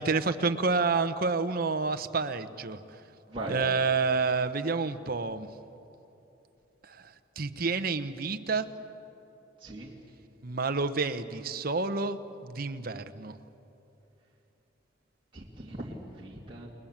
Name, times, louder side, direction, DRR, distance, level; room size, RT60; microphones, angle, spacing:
voice 1, 0.0-2.8 3.5-5.5 6.8-7.0 7.4-8.7 10.4-12.2 12.4-13.4, right 4 dB, 50° right, 9 dB, 0.9 m, -29 dB
voice 2, 9.6-9.9 15.3-16.7, right 1 dB, 25° right, -5 dB, 2.4 m, -39 dB
29.5 x 20.5 x 7.3 m, 3.0 s
head